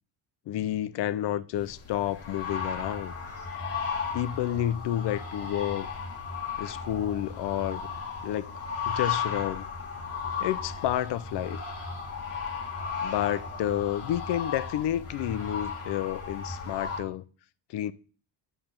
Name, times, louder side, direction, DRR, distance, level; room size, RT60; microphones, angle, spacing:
voice 1, 0.5-3.1 4.1-5.9 6.6-7.9 8.2-8.5 8.9-9.7 10.4-11.6 13.0-17.3 17.7-17.9, left 12 dB, 60° left, 0.5 m, -30 dB
sound 1, 1.6-17.0, left 5 dB, 30° left, 1.4 m, -35 dB
8.8 x 3.3 x 5.7 m
cardioid pair, 165°, 47 cm